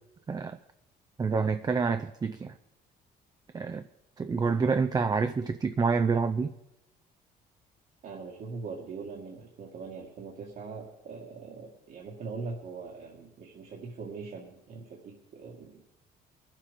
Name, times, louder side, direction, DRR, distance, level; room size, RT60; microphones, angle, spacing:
voice 1, 0.3-0.6 1.2-2.5 3.5-3.9 4.2-6.5, right 5 dB, 25° right, 8 dB, 0.6 m, -27 dB
voice 2, 8.0-15.8, right 4 dB, 60° right, -2 dB, 2.0 m, -41 dB
21.5 x 7.4 x 5.3 m, 0.89 s
cardioid pair, 110°, 17 cm